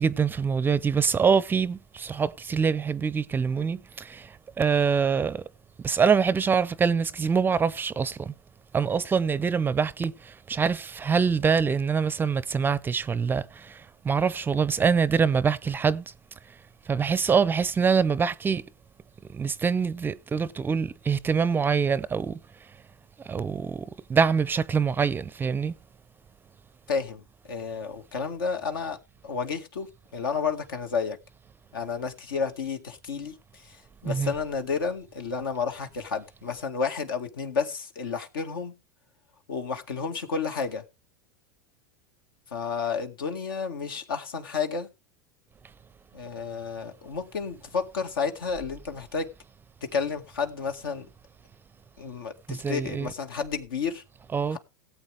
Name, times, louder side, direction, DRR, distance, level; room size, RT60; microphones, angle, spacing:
voice 1, 0.0-4.3 4.6-5.4 5.8-8.3 8.7-13.8 14.0-16.0 16.9-18.6 19.3-22.4 23.3-25.7 34.0-34.3 52.5-53.1 54.3-54.6, right 6 dB, 20° right, 0.5 m, -25 dB
voice 2, 26.9-27.2 27.5-29.0 29.2-31.2 31.7-33.4 33.6-33.8 34.0-38.7 39.5-40.8 42.5-44.9 46.1-49.3 49.8-51.1 52.0-54.0 54.5-54.6, left 5 dB, 80° left, 2.0 m, -31 dB
17.5 x 8.1 x 3.5 m
hypercardioid pair, 105°, 11 cm